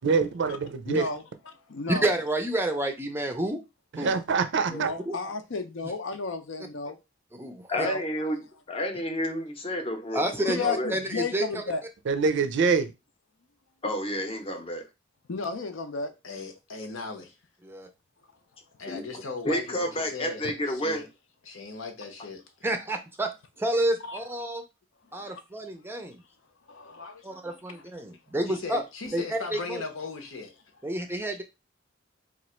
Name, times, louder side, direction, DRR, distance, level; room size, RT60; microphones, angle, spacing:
voice 1, 0.0-0.6 0.9-1.0 3.9-4.9 12.1-12.9, right 5 dB, 60° right, 0.5 m, -24 dB
voice 2, 0.9-1.2 1.7-2.1 4.7-7.0 7.8-8.0 10.5-11.8 15.3-16.1 24.0-24.2 25.3-25.4 26.7-27.1, left 4 dB, 65° left, 0.6 m, -33 dB
voice 3, 1.9-3.6 4.0-4.2 4.7-4.8 5.1-5.2 7.3-7.9 10.1-10.7 10.9-11.4 17.6-17.9 22.6-23.3 23.6-24.6 25.1-26.2 27.2-28.8 29.1-29.8 30.8-31.4, right 1 dB, 10° right, 0.5 m, -29 dB
voice 4, 7.7-10.9 13.8-14.9 18.9-21.0, equal, 30° left, 0.7 m, -30 dB
voice 5, 16.2-17.3 18.8-21.1 21.4-22.4 25.2-25.3 26.9-27.8 28.5-30.5, left 4 dB, 90° left, 0.9 m, -38 dB
3.0 x 2.4 x 4.3 m
head